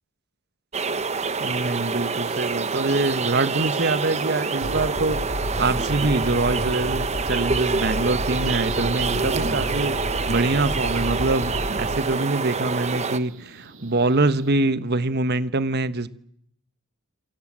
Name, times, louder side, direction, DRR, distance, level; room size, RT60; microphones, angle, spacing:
sound 1, 0.7-13.2, right 4 dB, 30° right, 1.2 m, -27 dB
sound 2, 1.2-14.5, right 2 dB, 65° right, 5.9 m, -42 dB
voice 1, 1.4-5.3 5.6-9.9 10.3-16.1, right 2 dB, 50° right, 1.3 m, -24 dB
sound 3, 4.6-12.0, left 1 dB, 65° left, 2.6 m, -31 dB
28.5 x 23.5 x 7.6 m
head